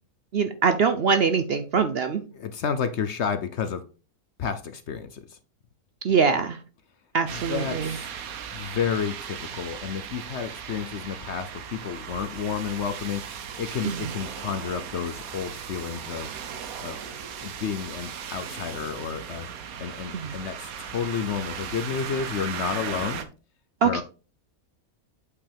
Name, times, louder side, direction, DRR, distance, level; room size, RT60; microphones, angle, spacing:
voice 1, 0.3-2.2 6.0-6.6 7.1-7.9 13.8-14.0 20.1-20.3 23.8-24.0, right 5 dB, 55° right, 0.7 m, -23 dB
voice 2, 2.3-3.9 4.4-5.4 7.3-8.1 8.5-16.4 16.8-17.0 17.4-23.2 23.8-24.0, left 7 dB, 60° left, 0.8 m, -31 dB
sound 1, 7.3-23.3, right 8 dB, 75° right, 1.3 m, -37 dB
8.2 x 5.5 x 3.4 m
omnidirectional pair, 1.6 m